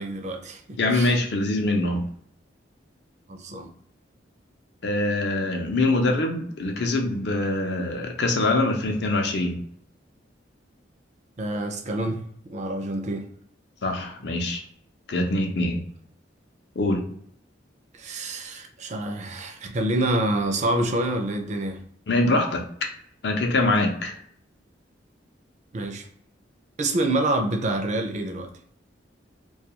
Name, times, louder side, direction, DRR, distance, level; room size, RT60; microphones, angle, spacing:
voice 1, 0.0-1.1 3.3-3.7 11.4-13.3 17.9-21.8 25.7-26.1 26.8-28.5, right 1 dB, 40° right, 4 dB, 0.4 m, -27 dB
voice 2, 0.8-2.0 4.8-9.6 13.8-14.6 15.1-15.8 16.8-17.0 22.1-22.9 23.2-24.2, left 2 dB, 60° left, 3 dB, 0.5 m, -24 dB
2.3 x 2.3 x 2.8 m, 0.64 s
head